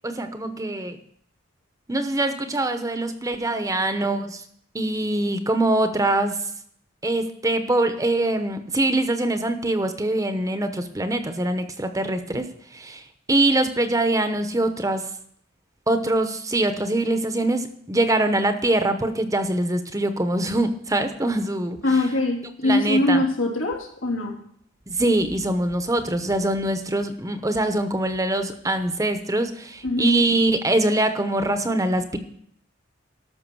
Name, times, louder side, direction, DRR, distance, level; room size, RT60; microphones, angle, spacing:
voice 1, 0.0-1.0 1.9-4.4 4.7-6.4 7.0-13.0 13.3-15.1 15.9-21.8 22.6-23.2 24.9-32.2, right 1 dB, 15° right, 8 dB, 0.9 m, -23 dB
voice 2, 21.8-24.4 29.8-30.2, left 2 dB, 85° left, 0 dB, 3.1 m, -22 dB
13.0 x 6.1 x 6.1 m, 0.65 s
head